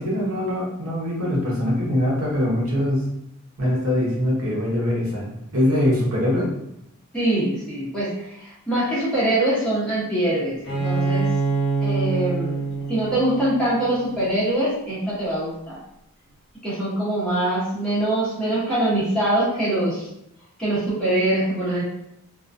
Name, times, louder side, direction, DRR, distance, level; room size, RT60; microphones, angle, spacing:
voice 1, 0.0-3.0 3.6-6.5, left 1 dB, 75° right, -4 dB, 0.8 m, -23 dB
voice 2, 7.1-11.3 11.8-12.6 12.9-15.8 16.6-20.1 20.6-21.8, right 1 dB, 5° left, -10 dB, 0.9 m, -23 dB
Bowed string instrument, 10.6-14.3, right 4 dB, 50° left, 0.8 m, -25 dB
2.4 x 2.2 x 2.5 m, 0.79 s
head